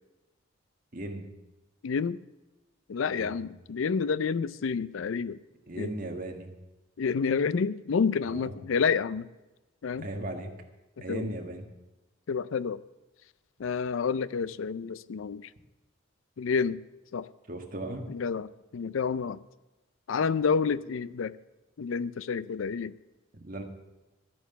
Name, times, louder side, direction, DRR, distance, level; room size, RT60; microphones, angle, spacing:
voice 1, 0.9-1.2 3.1-3.4 5.7-6.5 8.2-8.6 9.9-10.5 11.0-11.7 17.5-18.1 23.3-23.6, right 1 dB, 45° right, 3 dB, 1.6 m, -37 dB
voice 2, 1.8-2.2 2.9-5.4 5.8-5.9 7.0-9.3 9.8-10.1 11.1-11.3 12.3-12.8 13.6-15.5 16.4-16.8 17.1-17.3 18.1-19.4 20.1-21.3 21.8-22.9, left 5 dB, 75° left, 18 dB, 0.4 m, -29 dB
12.5 x 9.4 x 6.8 m, 1.1 s
head